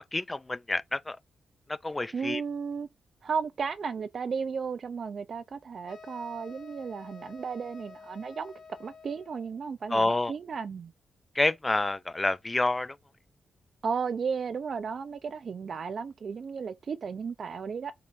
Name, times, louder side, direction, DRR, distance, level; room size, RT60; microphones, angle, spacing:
voice 1, 0.1-1.2 1.8-2.4 9.9-10.3 11.4-12.9, left 2 dB, 20° left, 0.3 m, -28 dB
voice 2, 2.1-2.9 3.2-8.5 8.8-10.9 13.8-17.9, right 6 dB, 55° right, 0.5 m, -34 dB
sound 1, 5.9-9.5, left 4 dB, 70° left, 0.9 m, -49 dB
4.5 x 3.6 x 2.5 m
cardioid pair, 90°, 0 cm